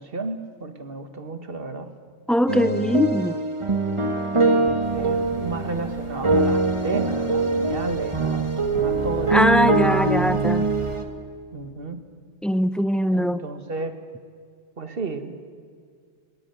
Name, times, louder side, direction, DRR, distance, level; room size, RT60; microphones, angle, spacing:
voice 1, 0.0-1.9 4.4-8.5 8.8-9.7 11.5-12.0 13.1-14.0 14.8-15.5, right 3 dB, 55° right, 8 dB, 1.8 m, -32 dB
voice 2, 2.3-3.4 9.3-10.6 12.4-13.4, equal, ahead, 12 dB, 0.4 m, -21 dB
sound 1, 2.5-11.0, right 3 dB, 25° right, 1.4 m, -23 dB
sound 2, 4.8-11.0, left 1 dB, 45° left, 4.3 m, -44 dB
22.0 x 18.0 x 9.2 m, 2.1 s
omnidirectional pair, 1.2 m